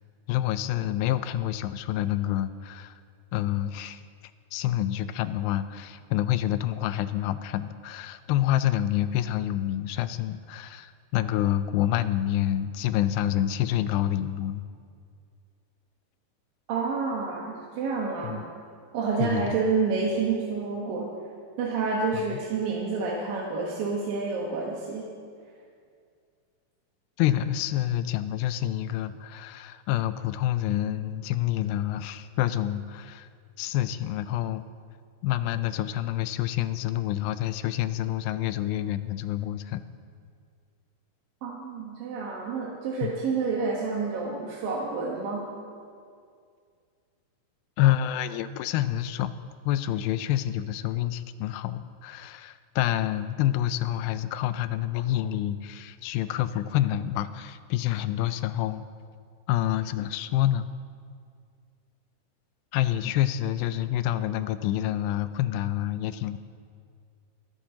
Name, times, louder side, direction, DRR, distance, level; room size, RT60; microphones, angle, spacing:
voice 1, 0.3-2.9 3.3-4.0 4.5-14.6 18.2-18.4 19.2-19.6 22.1-22.2 27.2-33.3 33.6-34.6 35.2-39.8 43.0-43.1 47.8-58.8 59.5-60.7 62.7-66.4, left 12 dB, 85° left, 12 dB, 2.3 m, -27 dB
voice 2, 16.7-18.4 18.9-21.1 21.6-25.1 41.4-45.5, right 4 dB, 70° right, -4 dB, 2.9 m, -29 dB
28.5 x 10.0 x 2.9 m, 2.2 s
omnidirectional pair, 4.3 m